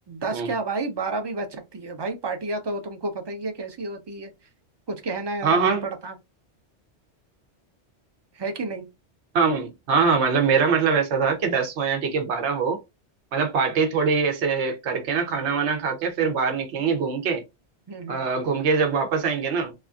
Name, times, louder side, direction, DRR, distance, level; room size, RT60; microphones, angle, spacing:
voice 1, 0.1-4.3 4.9-6.2 8.3-8.9 17.9-18.2, right 3 dB, 30° right, 0.5 m, -31 dB
voice 2, 5.4-5.8 9.3-12.8 13.3-17.4 18.1-19.7, right 5 dB, 75° right, 1.0 m, -23 dB
3.2 x 2.4 x 2.3 m
omnidirectional pair, 1.2 m